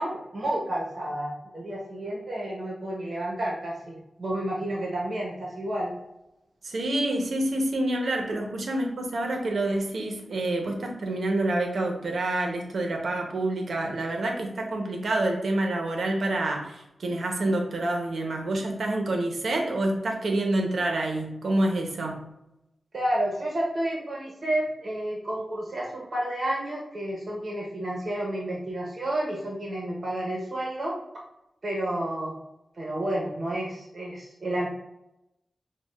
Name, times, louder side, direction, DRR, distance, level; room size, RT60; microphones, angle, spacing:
voice 1, 0.0-5.9 22.9-31.0 31.6-32.3 32.8-34.7, right 1 dB, 50° right, -3 dB, 0.9 m, -30 dB
voice 2, 6.6-22.2, right 1 dB, 80° right, 2 dB, 0.8 m, -27 dB
6.2 x 2.3 x 2.4 m, 0.88 s
wide cardioid pair, 75°, 0 cm